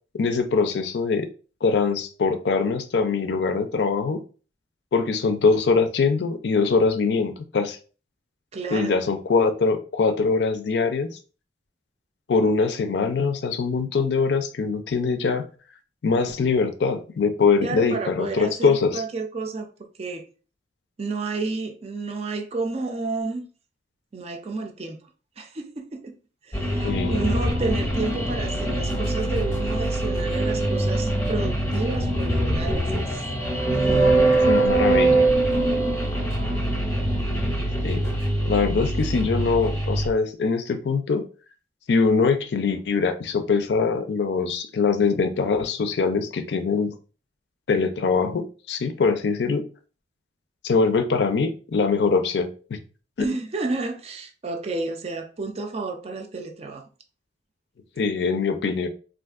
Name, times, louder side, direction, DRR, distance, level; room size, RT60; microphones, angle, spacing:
voice 1, 0.1-1.3 1.6-4.2 4.9-7.8 8.7-11.1 12.3-15.5 16.0-19.0 26.8-27.2 34.5-35.2 37.8-38.0 38.5-41.2 41.9-46.9 47.7-49.6 50.6-52.8 53.2-53.3 58.0-58.9, left 4 dB, 70° left, 0.4 m, -23 dB
voice 2, 8.5-9.0 17.6-20.3 21.0-23.5 24.1-25.0 25.4-26.1 26.4-33.3 33.7-34.5 53.2-56.9, right 3 dB, 35° right, 0.5 m, -31 dB
sound 1, 26.5-40.1, right 1 dB, 15° left, 0.7 m, -23 dB
3.5 x 2.5 x 2.4 m
head